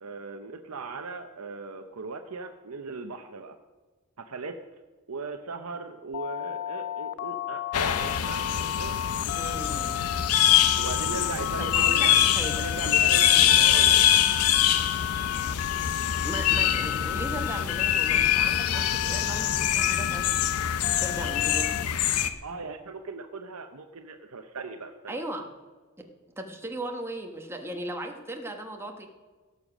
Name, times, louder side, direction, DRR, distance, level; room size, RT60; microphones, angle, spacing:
voice 1, 0.0-3.6 4.2-4.6 5.1-9.0 10.7-12.2 12.6-14.2 22.4-25.2, right 4 dB, 70° right, 6 dB, 0.8 m, -38 dB
Telephone, 6.1-21.8, left 13 dB, 55° left, 0.3 m, -33 dB
sound 1, 7.7-22.3, left 10 dB, 80° left, 0.7 m, -24 dB
voice 2, 9.3-9.9 11.6-12.6 16.2-20.3 20.9-21.9 25.1-25.5 26.4-29.1, right 1 dB, 10° right, 3 dB, 1.2 m, -37 dB
17.0 x 6.9 x 6.2 m, 1.3 s
head